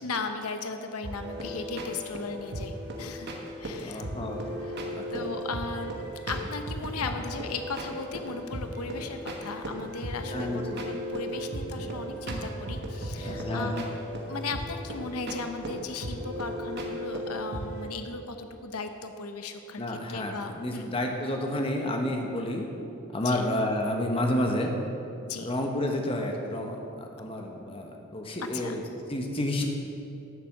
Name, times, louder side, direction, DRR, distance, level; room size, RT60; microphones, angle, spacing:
voice 1, 0.0-3.3 3.6-4.0 4.6-4.8 5.1-13.9 14.3-20.9 23.2-23.5 25.3-25.5 28.5-28.8, left 4 dB, 90° left, 7 dB, 0.8 m, -37 dB
sound 1, 1.0-17.9, equal, 50° right, 1.4 m, -36 dB
voice 2, 3.8-4.4 4.9-5.3 10.3-10.8 11.8-11.9 13.2-13.8 19.8-22.7 23.1-24.7 25.4-29.6, left 1 dB, 25° left, 2 dB, 1.2 m, -30 dB
11.0 x 7.1 x 7.3 m, 2.8 s
head